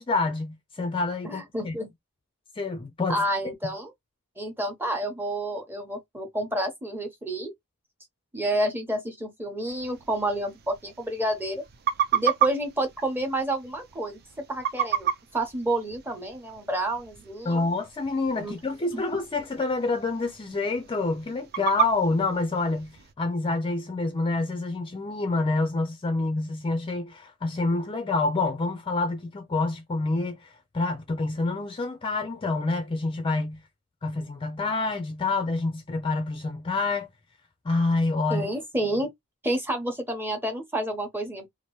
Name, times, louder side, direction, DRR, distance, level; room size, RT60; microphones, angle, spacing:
voice 1, 0.0-1.8 2.6-3.2 3.6-3.7 17.4-33.6 34.0-37.1 37.6-38.4, left 3 dB, 25° left, 0.4 m, -27 dB
voice 2, 1.2-1.9 3.1-3.9 4.4-7.5 8.3-11.6 12.1-14.2 14.5-17.6 18.4-18.6 18.9-19.0 38.3-39.1 39.4-41.5, right 1 dB, 10° right, 0.8 m, -29 dB
sound 1, 9.7-23.1, right 10 dB, 45° right, 0.4 m, -33 dB
2.9 x 2.5 x 3.0 m
head